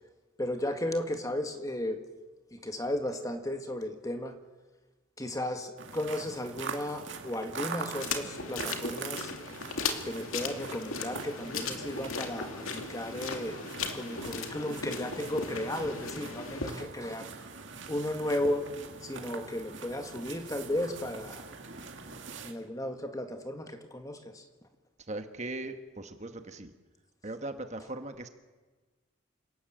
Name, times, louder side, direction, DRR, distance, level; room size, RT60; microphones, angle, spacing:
voice 1, 0.4-2.0 2.5-4.4 5.2-9.3 10.0-13.6 13.9-17.3 17.9-18.7 19.0-21.5 22.4-24.4, left 1 dB, 15° left, 6 dB, 1.7 m, -34 dB
sound 1, 5.8-22.5, right 4 dB, 60° right, 2.3 m, -43 dB
sound 2, 8.0-16.7, left 4 dB, 85° left, 2.3 m, -37 dB
voice 2, 25.1-26.7 27.2-28.3, right 2 dB, 35° right, 7 dB, 1.3 m, -39 dB
27.5 x 18.0 x 7.6 m, 1.3 s
head